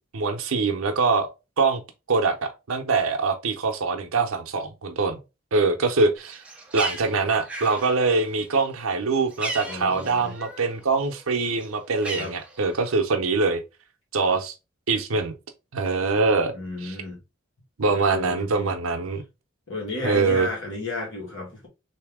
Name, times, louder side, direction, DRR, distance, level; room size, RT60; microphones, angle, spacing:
voice 1, 0.1-1.3 1.6-1.8 2.1-5.2 5.5-6.4 6.7-13.6 14.1-14.5 14.9-15.3 15.7-16.5 16.8-16.9 17.8-19.2 20.0-20.5, right 4 dB, 85° right, 0.7 m, -23 dB
Bird, 6.2-10.8 11.1-13.0, right 2 dB, 5° right, 0.6 m, -37 dB
voice 2, 9.7-10.3 12.2-12.3 16.5-17.2 17.9-18.7 19.7-21.7, left 2 dB, 65° left, 1.8 m, -33 dB
3.5 x 2.8 x 3.4 m
head